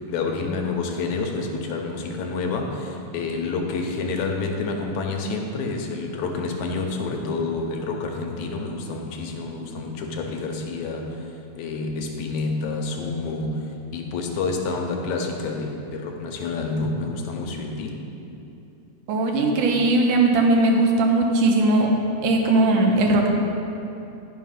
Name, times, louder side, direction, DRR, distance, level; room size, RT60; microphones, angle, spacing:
voice 1, 0.1-11.2 11.6-13.6 13.9-18.0, left 3 dB, 75° left, 2 dB, 2.1 m, -28 dB
voice 2, 19.1-21.9 22.2-23.3, right 2 dB, 90° right, 1 dB, 2.5 m, -19 dB
10.5 x 5.6 x 5.7 m, 2.8 s
omnidirectional pair, 3.5 m